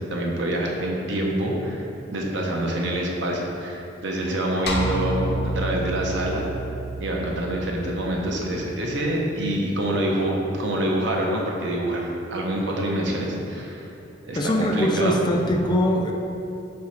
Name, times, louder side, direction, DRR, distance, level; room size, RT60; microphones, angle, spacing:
voice 1, 0.0-6.5 7.0-13.9 14.2-15.2, right 1 dB, 65° right, -1 dB, 0.8 m, -26 dB
sound 1, 4.7-9.1, right 1 dB, 55° left, 0.7 m, -30 dB
voice 2, 14.4-16.1, equal, 25° left, 2 dB, 0.4 m, -22 dB
7.0 x 4.8 x 3.2 m, 2.9 s
head